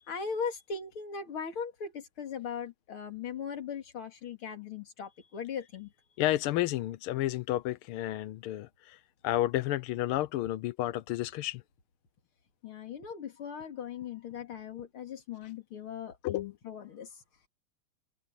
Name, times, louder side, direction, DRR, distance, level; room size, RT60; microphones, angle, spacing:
voice 1, 0.1-5.9 12.6-17.1, left 6 dB, 75° left, 3.3 m, -39 dB
voice 2, 6.2-11.6 16.2-16.5, left 14 dB, 90° left, 1.6 m, -31 dB
omnidirectional pair, 2.4 m